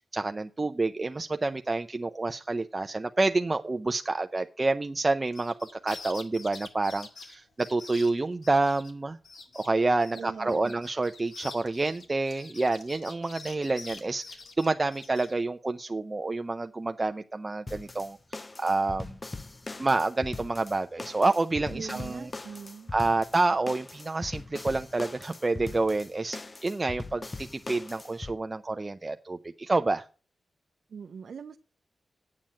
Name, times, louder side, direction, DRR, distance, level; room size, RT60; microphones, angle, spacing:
voice 1, 0.0-5.5 5.8-9.2 9.5-19.2 19.8-22.3 22.9-30.1, right 3 dB, 25° right, 7 dB, 0.5 m, -28 dB
sound 1, 5.3-8.9 9.2-9.7 10.0-15.3, left 4 dB, 70° left, 1.9 m, -46 dB
voice 2, 10.1-10.8 21.7-22.9 30.9-31.6, right 6 dB, 70° right, 6 dB, 0.6 m, -41 dB
sound 2, 17.7-28.4, left 3 dB, 25° left, 0.5 m, -41 dB
8.8 x 7.5 x 6.2 m, 0.36 s
wide cardioid pair, 95°, 0 cm